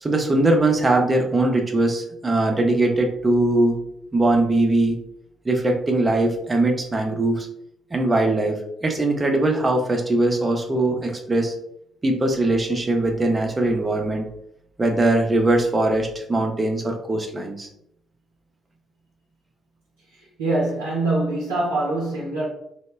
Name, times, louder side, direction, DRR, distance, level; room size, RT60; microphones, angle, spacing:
voice 1, 0.0-3.8 4.1-5.0 5.4-7.5 7.9-11.5 12.0-14.3 14.8-17.7, right 2 dB, 25° right, 2 dB, 0.6 m, -21 dB
voice 2, 20.1-22.5, right 2 dB, 80° right, -7 dB, 0.5 m, -24 dB
2.1 x 2.0 x 3.2 m, 0.73 s
figure-of-eight pair, 45°, 0 cm